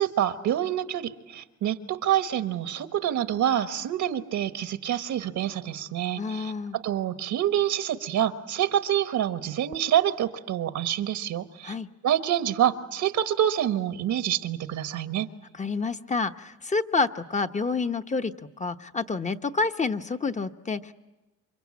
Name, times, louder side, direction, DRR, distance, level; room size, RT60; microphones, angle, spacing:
voice 1, 0.0-11.7 12.0-15.3, right 11 dB, 75° right, 10 dB, 1.3 m, -27 dB
voice 2, 6.2-6.8 11.6-11.9 15.6-18.3 18.6-20.9, left 4 dB, 25° left, 8 dB, 1.0 m, -28 dB
28.0 x 25.0 x 8.5 m, 1.1 s
cardioid pair, 90°, 30 cm